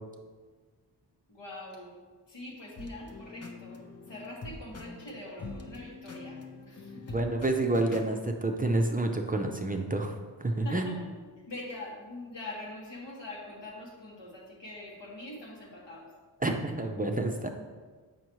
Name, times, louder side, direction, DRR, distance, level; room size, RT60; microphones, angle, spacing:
voice 1, 1.3-2.0 2.3-3.8 4.1-7.2 10.6-11.1 11.5-16.1, left 1 dB, 80° left, -4 dB, 1.8 m, -43 dB
sound 1, 2.8-8.1, left 3 dB, 35° left, 0.7 m, -44 dB
voice 2, 7.1-11.0 16.4-17.5, right 2 dB, 20° right, 3 dB, 0.5 m, -29 dB
7.5 x 5.6 x 3.0 m, 1.4 s
wide cardioid pair, 95°, 43 cm